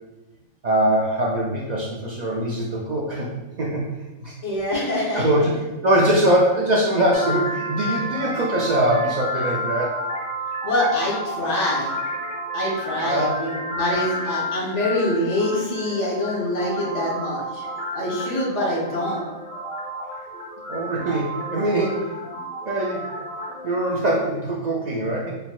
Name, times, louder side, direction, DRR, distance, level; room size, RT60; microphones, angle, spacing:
voice 1, 0.6-3.3 3.6-3.9 4.2-4.3 5.1-5.5 5.8-10.0 13.0-13.4 20.7-22.1 22.7-23.0 23.6-25.3, right 1 dB, 75° right, -3 dB, 0.4 m, -22 dB
voice 2, 4.4-5.4 10.6-11.9 12.5-17.6 17.9-19.3, left 1 dB, 60° left, -5 dB, 1.5 m, -25 dB
sound 1, 7.1-23.9, equal, 90° left, 2.0 m, -31 dB
4.0 x 3.8 x 2.3 m, 1.1 s
omnidirectional pair, 1.4 m